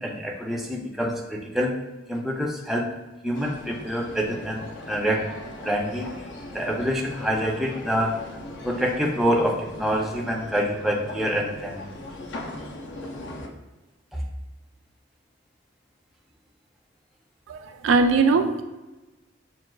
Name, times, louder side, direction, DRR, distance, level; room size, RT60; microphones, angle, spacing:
voice 1, 0.0-1.8 2.1-2.9 3.2-5.2 5.6-6.1 6.5-8.1 8.6-11.9 14.1-14.2, equal, ahead, -1 dB, 0.4 m, -26 dB
sound 1, 3.3-13.5, left 2 dB, 65° left, 0.5 m, -39 dB
voice 2, 17.8-18.6, right 4 dB, 85° right, 7 dB, 0.3 m, -19 dB
5.9 x 2.3 x 2.3 m, 1.1 s
head